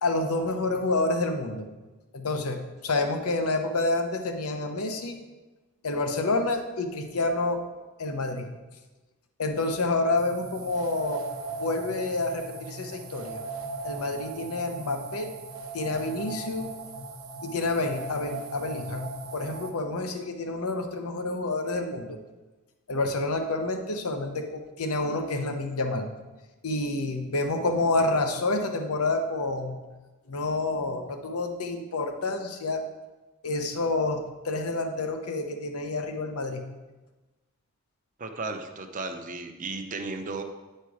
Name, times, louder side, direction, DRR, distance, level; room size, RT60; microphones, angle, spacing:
voice 1, 0.0-1.7 2.1-5.2 5.8-7.6 8.0-8.5 9.4-11.2 11.6-13.4 13.8-15.3 15.7-16.7 17.4-19.1 19.3-22.2 22.9-26.1 26.6-29.8 30.3-32.8 33.4-36.6, left 2 dB, 90° left, 5 dB, 0.8 m, -28 dB
sound 1, 10.1-19.7, right 3 dB, 65° right, 0.8 m, -38 dB
voice 2, 38.2-40.4, right 3 dB, 35° right, 6 dB, 0.6 m, -34 dB
9.2 x 4.4 x 4.8 m, 1.2 s
head